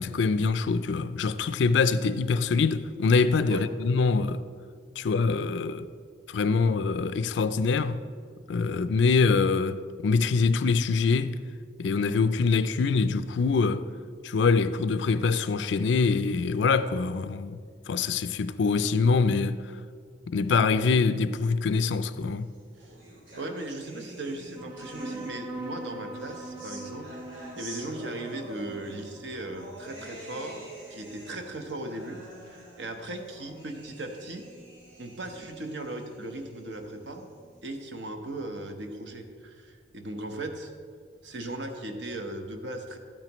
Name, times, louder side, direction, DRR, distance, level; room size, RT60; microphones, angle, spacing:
voice 1, 0.0-4.4 5.0-5.9 6.3-8.0 8.5-11.4 11.8-13.9 14.2-17.6 17.9-19.6 20.3-22.5, left 4 dB, 70° left, 0.4 m, -24 dB
sound 1, 22.2-25.7 26.1-37.6, right 1 dB, 90° right, 2.9 m, -48 dB
voice 2, 23.3-27.2 27.6-34.5 35.0-37.3 37.6-40.7 41.2-43.0, right 2 dB, 70° right, 1.0 m, -37 dB
sound 2, 24.5-31.5, right 1 dB, 25° right, 1.6 m, -42 dB
13.5 x 8.9 x 3.0 m
head